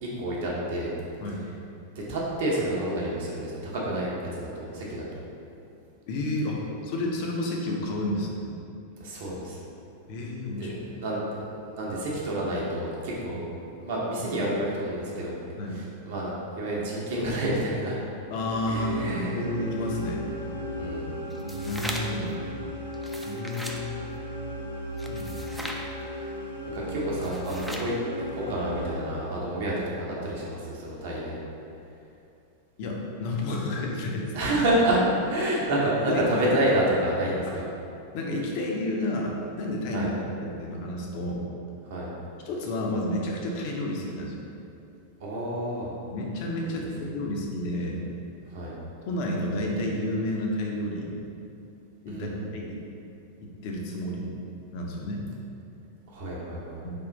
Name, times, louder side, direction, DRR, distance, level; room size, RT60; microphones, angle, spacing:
voice 1, 0.0-0.9 1.9-5.1 9.0-9.6 10.5-13.4 13.8-15.3 15.7-18.0 18.7-19.5 20.8-21.2 26.7-31.4 34.3-35.0 35.3-37.6 39.9-40.1 41.8-42.1 45.2-45.9 46.6-46.8 48.5-48.8 52.1-52.4 56.1-56.8, right 1 dB, 55° right, -4 dB, 0.8 m, -29 dB
voice 2, 6.1-8.5 10.1-11.0 13.3-13.4 15.6-15.8 18.3-20.3 21.4-22.3 23.3-24.1 25.0-25.5 32.8-34.3 36.1-36.2 38.1-40.1 40.4-41.5 42.4-44.4 46.1-48.0 49.0-51.2 52.0-52.8 53.4-54.3 54.7-55.2 56.8-56.9, left 1 dB, 45° left, -1 dB, 0.5 m, -31 dB
sound 1, 18.3-29.7, equal, 85° right, 0.5 m, -36 dB
sound 2, 21.3-22.3 22.9-23.8 25.0-25.9 27.1-28.0, equal, 5° right, 0.3 m, -38 dB
3.5 x 2.4 x 3.8 m, 2.7 s
figure-of-eight pair, 90°, 0 cm